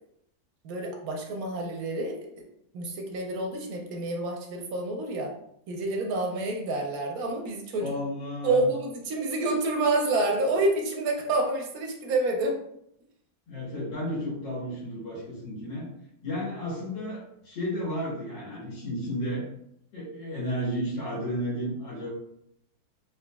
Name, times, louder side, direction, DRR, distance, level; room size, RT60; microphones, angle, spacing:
voice 1, 0.6-2.3 2.7-5.3 5.7-7.9 8.4-12.6, right 2 dB, 70° right, 1 dB, 0.9 m, -28 dB
voice 2, 7.8-8.6 13.5-15.9 16.2-19.4 19.9-22.1, equal, 90° left, -7 dB, 2.0 m, -32 dB
3.8 x 3.1 x 2.2 m, 0.75 s
omnidirectional pair, 1.9 m